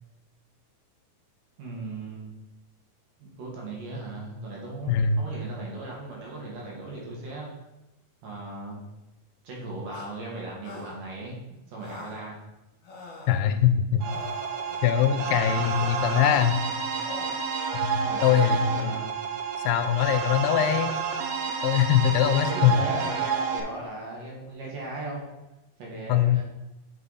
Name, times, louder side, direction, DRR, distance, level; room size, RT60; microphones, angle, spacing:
voice 1, 1.6-2.3 3.2-7.5 8.2-8.9 9.4-11.4 11.7-12.4 13.4-13.5 15.1-15.3 18.0-19.1 22.1-25.3 25.8-26.4, right 2 dB, 60° right, -3 dB, 2.9 m, -37 dB
voice 2, 4.9-5.2 13.3-14.0 14.8-16.6 17.7-18.9 19.6-20.9 21.6-22.7 26.1-26.4, left 9 dB, 85° left, 10 dB, 2.5 m, -22 dB
sound 1, 9.9-10.1 10.6-10.9 11.8-12.3 12.8-13.4 14.0-14.9 15.4-16.5 17.0-17.4, left 2 dB, 60° left, 2.4 m, -41 dB
sound 2, 14.0-23.6, right 6 dB, 75° right, 2.0 m, -30 dB
7.8 x 5.5 x 4.1 m, 0.98 s
omnidirectional pair, 4.5 m